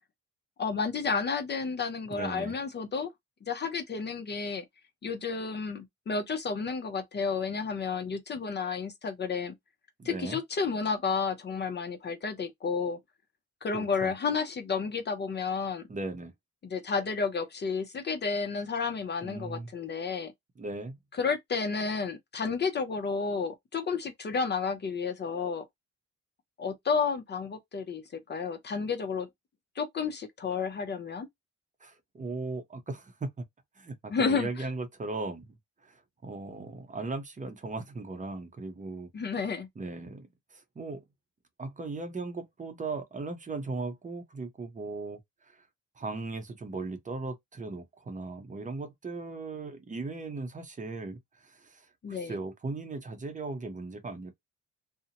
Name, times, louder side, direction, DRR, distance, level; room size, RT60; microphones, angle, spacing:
voice 1, 0.6-3.1 3.4-4.6 5.0-9.5 10.0-13.0 13.6-15.8 16.7-20.3 21.2-25.6 26.6-28.0 28.3-29.3 29.8-31.3 34.1-34.6 39.1-39.7 52.0-52.3, left 5 dB, 35° left, 0.6 m, -31 dB
voice 2, 2.1-2.5 10.0-10.4 13.7-14.1 15.9-16.3 19.2-19.7 20.6-21.0 31.8-33.4 33.8-35.6 35.8-39.1 39.8-41.0 41.6-45.7 46.0-54.4, right 3 dB, 25° right, 0.6 m, -38 dB
2.7 x 2.0 x 2.8 m
cardioid pair, 90°, 30 cm